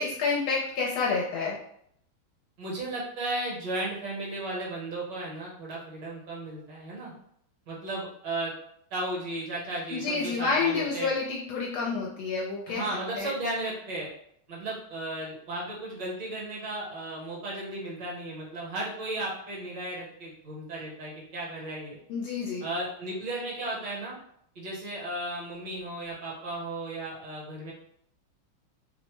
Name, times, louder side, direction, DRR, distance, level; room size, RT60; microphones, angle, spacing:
voice 1, 0.0-1.6 9.9-12.8 13.2-13.3 22.1-22.6, left 4 dB, 75° left, -3 dB, 1.3 m, -29 dB
voice 2, 2.6-7.1 7.7-8.5 8.9-11.1 12.7-14.1 14.5-22.0 22.6-24.1 24.5-27.7, right 2 dB, 65° right, -4 dB, 1.5 m, -35 dB
3.4 x 2.0 x 3.0 m, 0.69 s
omnidirectional pair, 2.3 m